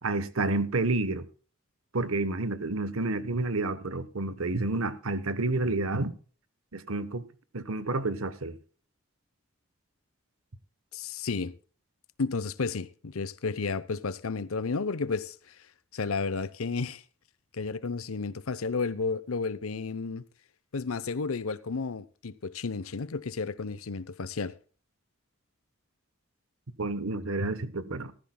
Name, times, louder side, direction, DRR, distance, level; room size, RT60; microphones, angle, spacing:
voice 1, 0.0-1.3 1.9-6.1 6.7-7.2 7.5-8.6 26.8-28.1, right 2 dB, 85° right, 1.1 m, -29 dB
voice 2, 10.9-11.5 12.2-15.4 15.9-17.0 17.5-20.2 20.7-24.5, left 4 dB, 90° left, 0.8 m, -32 dB
16.0 x 14.0 x 2.3 m
head